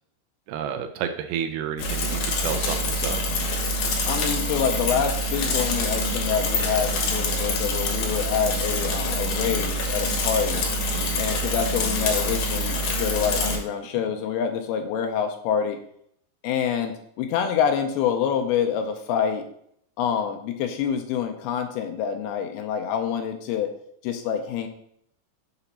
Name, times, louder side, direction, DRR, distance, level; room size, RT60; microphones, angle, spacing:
voice 1, 0.5-3.2 10.9-11.3, right 8 dB, 80° right, 7 dB, 2.3 m, -31 dB
Bicycle / Mechanisms, 1.8-13.6, left 1 dB, 65° left, 2.0 m, -26 dB
voice 2, 4.1-10.6 11.2-15.8 16.4-19.5 20.0-23.7 24.0-24.7, left 8 dB, 85° left, 4 dB, 2.5 m, -26 dB
6.8 x 3.0 x 5.5 m, 0.69 s
omnidirectional pair, 4.6 m